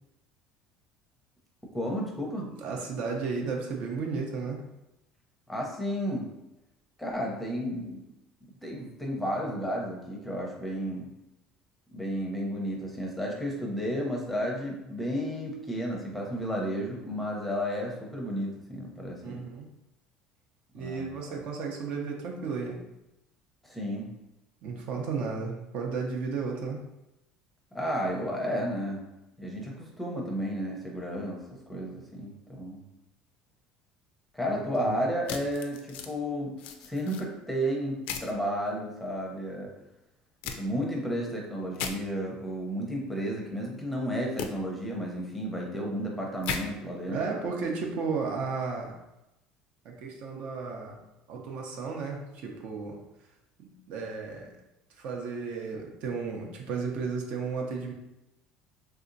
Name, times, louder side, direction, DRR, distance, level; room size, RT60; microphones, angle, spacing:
voice 1, 1.7-2.5 5.5-6.3 7.0-8.0 8.6-11.1 11.9-19.5 20.8-21.4 23.6-24.1 27.7-29.1 29.4-32.9 34.3-36.5 36.8-39.7 40.6-47.2, equal, 5° left, -2 dB, 0.6 m, -32 dB
voice 2, 2.4-4.6 19.2-19.7 20.7-22.8 24.6-26.8 34.5-35.0 47.1-49.0 49.8-51.0 51.3-53.0 53.6-54.5 55.0-57.9, right 4 dB, 60° right, 1 dB, 0.6 m, -34 dB
sound 1, 35.3-36.1 36.6-37.2 38.1-38.3 40.4-40.6 41.7-41.9 44.4-44.5 46.4-46.6, left 7 dB, 70° left, 0.3 m, -35 dB
3.3 x 2.8 x 2.5 m, 0.91 s
cardioid pair, 135°, 2 cm